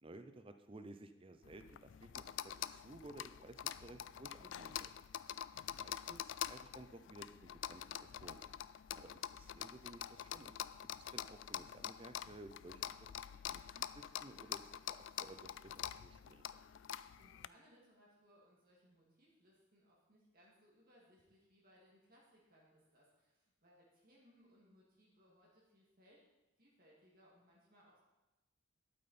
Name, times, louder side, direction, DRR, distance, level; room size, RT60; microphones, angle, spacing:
voice 1, 0.0-5.0 5.7-8.5 8.9-10.5 11.0-16.5, right 2 dB, 25° right, 9 dB, 0.6 m, -56 dB
sound 1, 1.4-17.5, left 10 dB, 60° left, 0.3 m, -46 dB
voice 2, 16.7-26.2 26.6-28.0, equal, 45° right, -4 dB, 2.4 m, -68 dB
12.5 x 8.7 x 4.3 m, 1.1 s
head